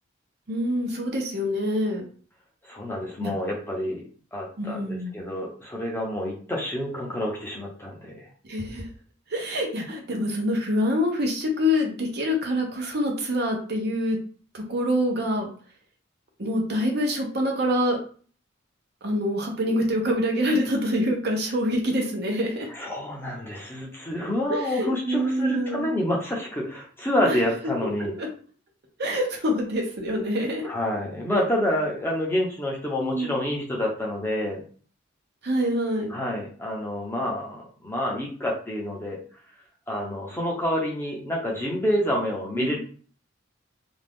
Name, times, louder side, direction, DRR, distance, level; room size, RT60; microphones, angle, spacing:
voice 1, 0.5-2.0 3.2-3.3 4.6-5.1 8.4-8.8 9.3-14.2 14.5-15.5 16.4-18.0 19.0-22.7 24.5-25.9 27.3-27.4 28.2-28.3 29.0-30.7 33.0-33.3 35.4-36.1 42.5-42.8, equal, 55° right, 1 dB, 0.7 m, -26 dB
voice 2, 2.6-4.0 4.3-8.3 22.7-28.1 30.6-34.6 36.1-39.2 39.9-42.8, left 1 dB, 10° left, -2 dB, 0.6 m, -28 dB
2.5 x 2.4 x 3.4 m, 0.43 s
head